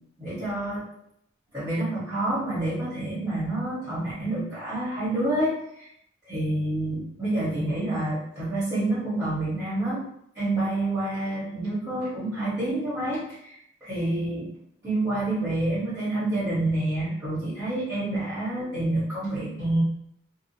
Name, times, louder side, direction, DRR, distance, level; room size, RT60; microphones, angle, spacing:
voice 1, 0.2-0.8 1.5-5.9 6.2-10.0 10.3-13.6 13.8-14.5 14.8-19.8, right 1 dB, 10° right, -12 dB, 1.1 m, -28 dB
2.6 x 2.4 x 2.7 m, 0.75 s
head